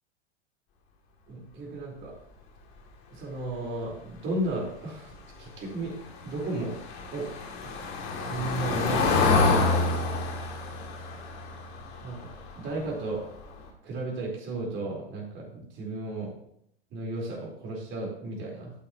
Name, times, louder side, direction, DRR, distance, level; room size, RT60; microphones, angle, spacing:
voice 1, 1.3-2.1 3.1-5.1 5.4-5.9 6.2-6.7 7.1-7.3 7.6-7.9 8.2-9.8 12.0-13.2 13.8-16.3 16.9-18.7, right 2 dB, 35° right, -3 dB, 4.4 m, -34 dB
Car passing by / Engine, 5.9-12.8 13.2-13.4 13.7-13.8, left 3 dB, 40° left, 2.6 m, -28 dB
12.0 x 8.8 x 3.0 m, 0.71 s
hypercardioid pair, 95°, 32 cm